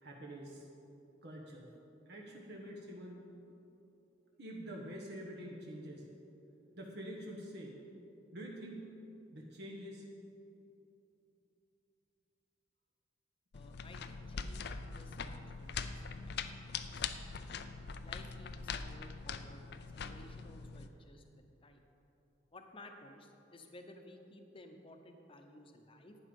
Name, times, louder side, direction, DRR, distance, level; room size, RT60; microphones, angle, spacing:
voice 1, 0.0-0.7 1.2-1.7 2.1-3.2 4.4-6.1 6.7-7.8 8.3-8.8 9.3-10.1, equal, 60° right, -1 dB, 1.2 m, -46 dB
sound 1, 13.5-20.9, left 5 dB, 60° left, 0.5 m, -42 dB
voice 2, 13.5-17.0 18.0-21.2 21.6-21.8 22.5-26.2, left 1 dB, 30° left, 5 dB, 0.9 m, -56 dB
11.5 x 8.9 x 5.3 m, 2.9 s
head